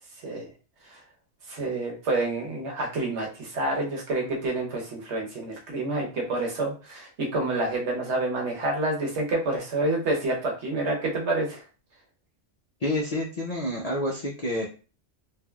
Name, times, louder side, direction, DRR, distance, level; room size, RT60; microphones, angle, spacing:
voice 1, 1.5-11.6, right 2 dB, 70° right, 0 dB, 1.2 m, -28 dB
voice 2, 12.8-14.7, left 1 dB, 50° left, -3 dB, 0.4 m, -28 dB
3.3 x 2.5 x 2.3 m, 0.35 s
omnidirectional pair, 1.2 m